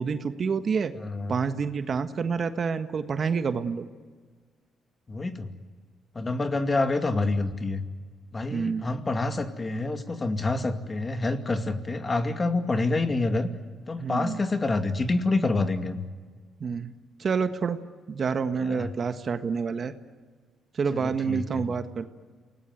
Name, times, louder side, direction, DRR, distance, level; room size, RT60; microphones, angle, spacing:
voice 1, 0.0-0.9 1.3-3.8 8.5-8.9 14.0-14.4 16.6-16.9 17.2-17.8 18.1-19.9 20.7-22.1, right 5 dB, 45° right, 9 dB, 1.5 m, -28 dB
voice 2, 0.9-1.4 5.1-5.5 6.1-7.8 8.3-13.5 13.9-16.1 18.6-18.9 20.9-21.6, left 2 dB, 30° left, 7 dB, 2.4 m, -27 dB
28.5 x 19.0 x 9.4 m, 1.5 s
cardioid pair, 90°, 0 cm